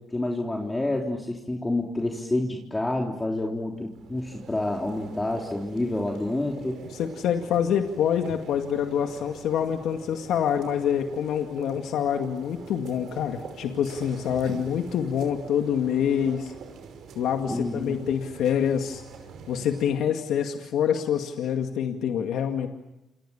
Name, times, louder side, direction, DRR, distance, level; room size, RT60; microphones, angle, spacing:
voice 1, 0.1-6.8 17.5-18.0, left 2 dB, 15° left, 0 dB, 3.7 m, -28 dB
sound 1, 3.8-19.9, right 6 dB, 75° right, 5.6 m, -44 dB
voice 2, 7.0-16.5 17.2-19.0 19.5-22.7, left 8 dB, 80° left, 5 dB, 2.1 m, -26 dB
29.0 x 27.5 x 7.3 m, 0.96 s
cardioid pair, 90°, 0 cm